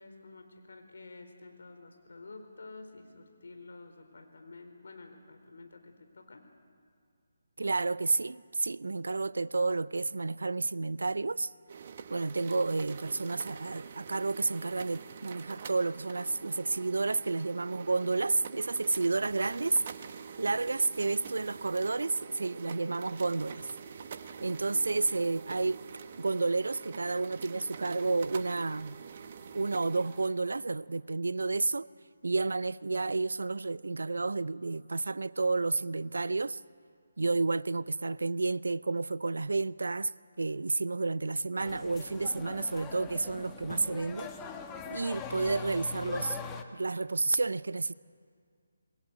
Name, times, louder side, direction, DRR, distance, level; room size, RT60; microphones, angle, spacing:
voice 1, 0.0-6.5, left 3 dB, 65° left, 4.3 m, -50 dB
voice 2, 7.6-11.5 12.1-19.8 20.4-23.7 24.4-25.9 26.2-29.0 29.5-31.9 32.2-36.6 37.2-40.1 40.4-44.3 44.9-46.4 46.7-47.9, right 3 dB, 70° right, 0.5 m, -31 dB
sound 1, 11.7-30.3, right 6 dB, 40° right, 1.3 m, -46 dB
sound 2, 41.6-46.6, left 6 dB, 15° left, 1.4 m, -42 dB
27.0 x 21.5 x 8.0 m
figure-of-eight pair, 150°, 0 cm